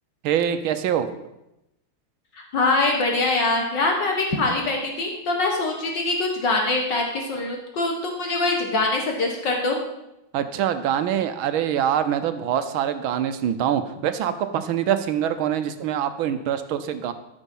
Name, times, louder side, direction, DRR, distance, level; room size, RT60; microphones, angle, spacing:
voice 1, 0.2-1.2 10.3-17.1, right 9 dB, 75° right, 10 dB, 1.5 m, -24 dB
voice 2, 2.3-9.8, left 2 dB, 60° left, 1 dB, 1.9 m, -23 dB
14.0 x 6.3 x 5.4 m, 0.89 s
omnidirectional pair, 2.3 m